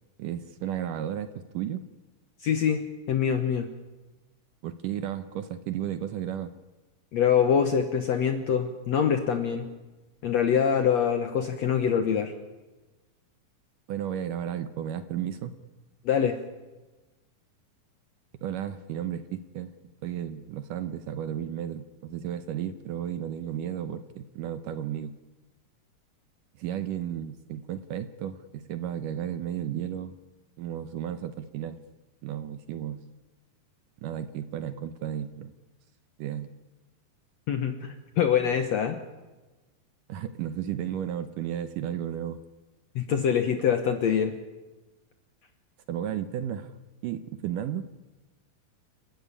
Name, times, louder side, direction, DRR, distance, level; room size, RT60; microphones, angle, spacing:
voice 1, 0.2-1.8 4.6-6.5 13.9-15.5 18.4-19.7 20.0-25.1 26.6-30.2 30.6-31.8 32.2-33.0 34.0-35.5 36.2-36.5 40.1-42.4 45.9-46.7 47.0-47.8, right 10 dB, 75° right, 11 dB, 2.1 m, -33 dB
voice 2, 2.4-3.7 7.1-9.7 10.2-12.3 16.1-16.4 37.5-39.0 43.0-44.3, left 8 dB, 65° left, 7 dB, 1.7 m, -24 dB
29.5 x 13.0 x 9.8 m, 1.2 s
omnidirectional pair, 4.4 m